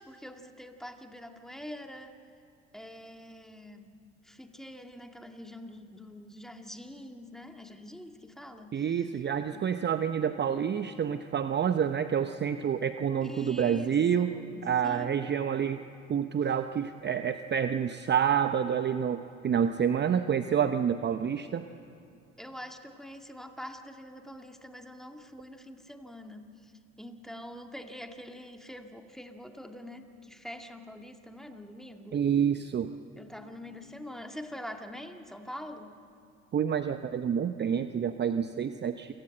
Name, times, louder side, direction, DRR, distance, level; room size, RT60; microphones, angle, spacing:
voice 1, 0.0-2.2 2.7-3.9 4.2-9.0 9.5-9.7 13.2-15.2 22.4-26.7 27.0-32.2 33.2-35.9, left 1 dB, ahead, 5 dB, 2.1 m, -45 dB
voice 2, 8.7-14.4 14.6-15.8 16.1-21.7 32.1-32.9 36.5-39.1, right 8 dB, 30° right, 10 dB, 0.8 m, -28 dB
28.0 x 17.0 x 7.8 m, 2.7 s
hypercardioid pair, 70°, 36 cm